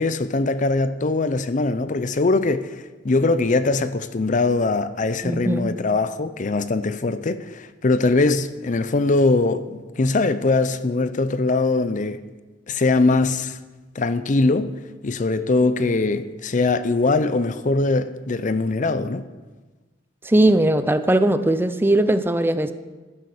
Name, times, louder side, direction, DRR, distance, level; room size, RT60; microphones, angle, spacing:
voice 1, 0.0-12.2 12.7-13.6 13.9-14.7 15.0-19.3, left 3 dB, 45° left, 0.6 m, -21 dB
voice 2, 5.2-5.7 20.2-22.7, right 1 dB, 10° right, 0.5 m, -19 dB
12.0 x 9.9 x 6.6 m
head